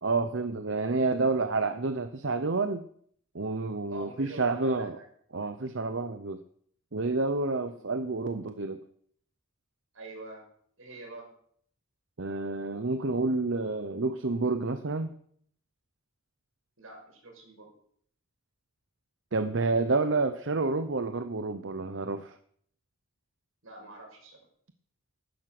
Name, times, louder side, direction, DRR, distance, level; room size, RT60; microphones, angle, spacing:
voice 1, 0.0-2.8 3.3-5.0 5.3-6.4 6.9-8.8 12.2-15.1 19.3-22.4, right 3 dB, 65° right, 10 dB, 0.8 m, -29 dB
voice 2, 3.9-5.0 7.7-8.0 9.9-10.4 10.8-11.3 16.8-17.7 23.6-24.5, right 2 dB, 85° right, 1 dB, 6.3 m, -45 dB
15.0 x 11.5 x 6.1 m, 0.64 s
head